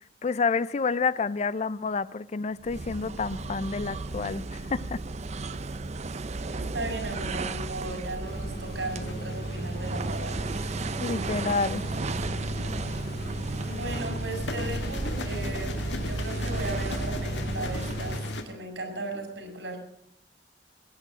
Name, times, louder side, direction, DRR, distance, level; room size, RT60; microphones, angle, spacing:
voice 1, 0.0-5.0 11.0-11.8, left 4 dB, 40° left, 17 dB, 0.4 m, -29 dB
sound 1, 2.6-18.4, right 3 dB, 40° right, 0.6 m, -34 dB
voice 2, 6.5-10.4 13.6-19.8, right 2 dB, 85° right, 4 dB, 4.8 m, -37 dB
sound 2, 8.2-18.4, equal, 60° left, 1.7 m, -36 dB
sound 3, 8.9-9.5 11.5-12.2 14.1-18.4, left 2 dB, 85° left, 1.7 m, -39 dB
19.5 x 9.0 x 6.2 m, 0.72 s
head